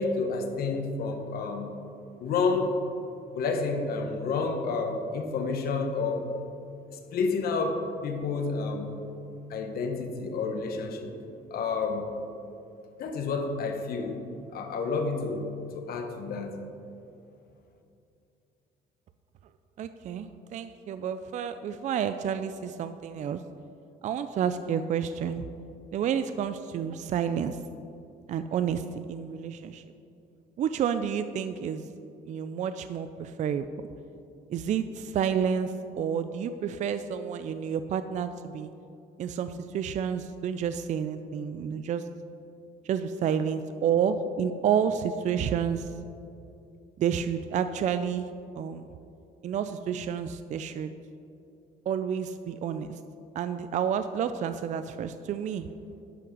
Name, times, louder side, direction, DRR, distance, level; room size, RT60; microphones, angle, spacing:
voice 1, 0.0-1.7 2.2-2.8 3.3-6.3 6.9-8.9 9.5-11.1 11.5-12.1 13.0-14.2 14.5-16.6, left 4 dB, 65° left, 5 dB, 1.1 m, -30 dB
voice 2, 19.8-23.4 24.0-25.5 25.9-27.6 28.3-29.8 30.6-31.9 32.3-33.7 34.5-38.7 39.2-42.0 42.8-45.9 47.0-48.3 48.6-48.8 49.4-50.9 51.9-53.0 53.3-55.7, right 8 dB, 45° right, 10 dB, 0.4 m, -30 dB
11.0 x 5.7 x 5.3 m, 2.7 s
cardioid pair, 110°, 17 cm